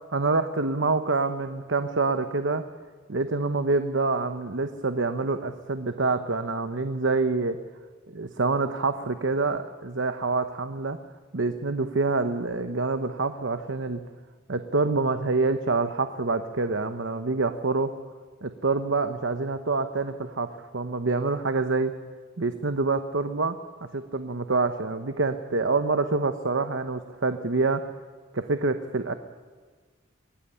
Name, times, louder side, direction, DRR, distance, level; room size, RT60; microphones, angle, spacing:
voice 1, 0.1-2.6 3.1-7.6 8.1-11.0 11.3-14.0 14.5-17.9 18.4-21.9 22.4-23.6 23.9-27.9 28.3-29.1, right 3 dB, 65° right, 9 dB, 1.0 m, -26 dB
25.0 x 18.5 x 9.8 m, 1.5 s
head